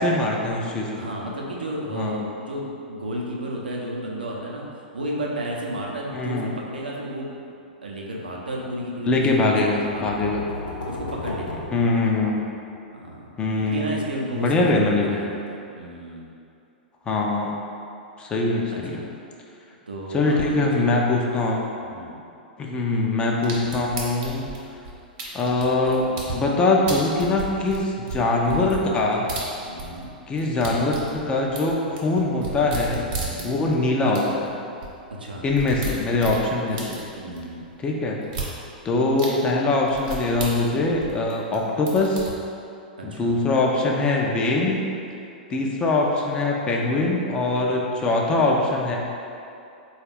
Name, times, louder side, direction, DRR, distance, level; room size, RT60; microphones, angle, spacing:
voice 1, 0.0-0.9 1.9-2.2 6.1-6.5 9.1-10.4 11.7-12.5 13.4-14.0 14.3-15.2 17.1-17.6 18.2-19.0 20.1-21.6 22.6-24.5 25.3-29.3 30.3-33.0 33.4-34.5 35.4-37.0 37.8-38.2 38.8-42.3 43.0-44.8 45.5-49.0, left 2 dB, 20° left, -2 dB, 0.4 m, -22 dB
voice 2, 0.9-4.7 4.9-7.3 7.8-9.6 9.8-10.3 10.9-11.7 12.9-16.3 18.7-19.0 19.9-21.0 21.8-22.2 29.6-30.1 33.2-33.6 35.2-35.4 37.2-37.6 43.0-43.4, right 1 dB, 75° right, -3 dB, 0.6 m, -33 dB
sound 1, 9.7-12.6, left 2 dB, 65° left, 0.7 m, -35 dB
sound 2, 23.4-26.4 26.9-30.1 30.3-33.8 34.2-34.3 34.5-34.6 34.8-34.9 35.3-37.4 38.2-38.5 39.2-39.3 39.9-41.6 41.9-42.3, right 3 dB, 45° right, 0.8 m, -33 dB
4.2 x 2.3 x 3.4 m, 2.6 s
figure-of-eight pair, 100°, 5 cm